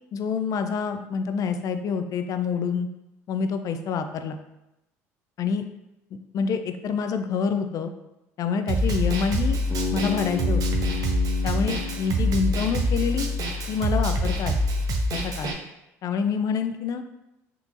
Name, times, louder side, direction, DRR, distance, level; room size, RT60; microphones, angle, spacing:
voice 1, 0.1-2.9 3.3-4.4 5.4-5.6 6.3-7.9 8.4-9.6 9.9-10.6 11.4-13.3 13.7-14.6 15.1-15.5 16.0-17.0, left 6 dB, 50° left, 7 dB, 0.4 m, -27 dB
Snare drum, 8.7-15.5, equal, 55° right, 0.5 m, -25 dB
Bass guitar, 9.7-13.8, left 3 dB, 25° left, 1.2 m, -33 dB
3.6 x 2.9 x 2.5 m, 0.91 s
hypercardioid pair, 70°, 8 cm